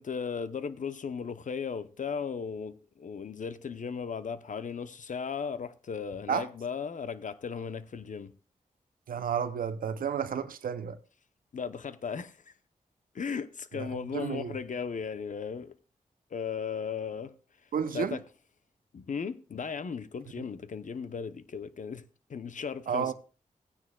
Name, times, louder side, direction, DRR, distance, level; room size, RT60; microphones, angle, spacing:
voice 1, 0.0-8.3 11.5-12.5 13.1-15.8 16.3-17.3 17.9-18.2 18.9-22.0 22.3-23.1, left 6 dB, 65° left, 0.8 m, -36 dB
voice 2, 9.1-11.0 13.8-14.5 17.7-18.2 22.9-23.1, right 7 dB, 90° right, 0.6 m, -31 dB
16.0 x 9.6 x 2.3 m
cardioid pair, 55°, 14 cm